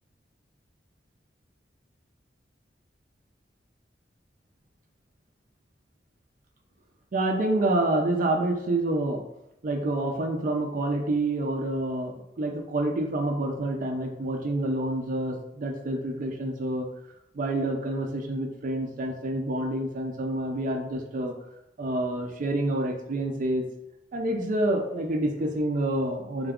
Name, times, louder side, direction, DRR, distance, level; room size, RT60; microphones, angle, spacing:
voice 1, 7.1-9.2 9.6-16.9 17.3-21.3 21.8-23.7 24.1-26.5, right 1 dB, 50° right, 2 dB, 0.4 m, -28 dB
3.8 x 2.4 x 3.5 m, 0.84 s
head